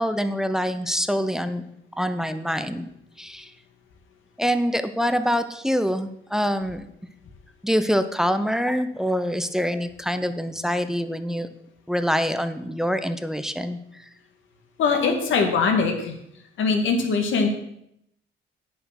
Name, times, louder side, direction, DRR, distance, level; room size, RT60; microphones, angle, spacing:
voice 1, 0.0-1.6 2.0-2.9 3.2-3.5 4.4-6.9 7.6-11.5 11.9-14.0, equal, ahead, 10 dB, 0.7 m, -25 dB
voice 2, 14.8-16.1 16.6-17.5, left 4 dB, 75° left, 4 dB, 2.0 m, -21 dB
9.1 x 6.9 x 5.9 m, 0.75 s
cardioid pair, 90°, 20 cm